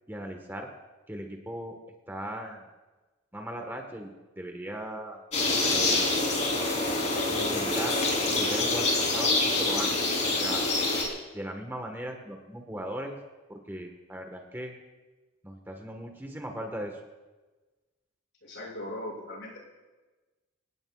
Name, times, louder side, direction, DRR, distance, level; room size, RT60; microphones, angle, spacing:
voice 1, 0.1-0.7 1.1-1.8 2.1-2.6 3.3-5.2 5.7-6.1 7.3-8.0 8.3-9.9 10.4-10.7 11.3-13.1 13.5-14.7 15.4-17.0, right 1 dB, 10° right, 3 dB, 1.5 m, -38 dB
sound 1, 5.3-11.0, left 2 dB, 35° left, 3.8 m, -26 dB
voice 2, 18.4-19.6, left 1 dB, 65° left, -4 dB, 7.0 m, -39 dB
26.5 x 18.0 x 2.5 m, 1.2 s
head